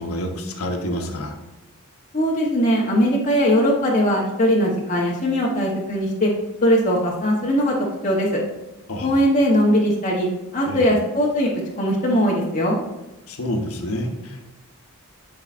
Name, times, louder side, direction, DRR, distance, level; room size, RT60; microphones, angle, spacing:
voice 1, 0.0-1.3 8.9-9.2 10.7-10.9 13.3-14.4, equal, 80° left, 3 dB, 1.0 m, -28 dB
voice 2, 2.1-6.3 6.6-7.7 8.0-8.3 9.0-10.3 10.5-11.5 11.8-12.8, equal, 35° left, -3 dB, 1.0 m, -20 dB
11.5 x 4.7 x 2.5 m, 1.0 s
head